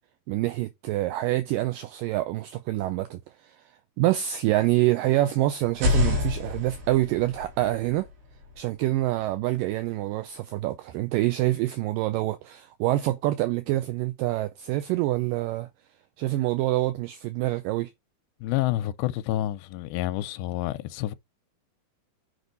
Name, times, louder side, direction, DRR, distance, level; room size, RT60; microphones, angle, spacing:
voice 1, 0.3-8.1 8.6-15.7 16.2-17.9, right 16 dB, 85° right, 2.0 m, -26 dB
sound 1, 5.7-9.5, left 4 dB, 60° right, 4.3 m, -29 dB
voice 2, 18.4-21.2, left 14 dB, 85° left, 2.4 m, -28 dB
6.3 x 5.2 x 3.9 m
omnidirectional pair, 4.4 m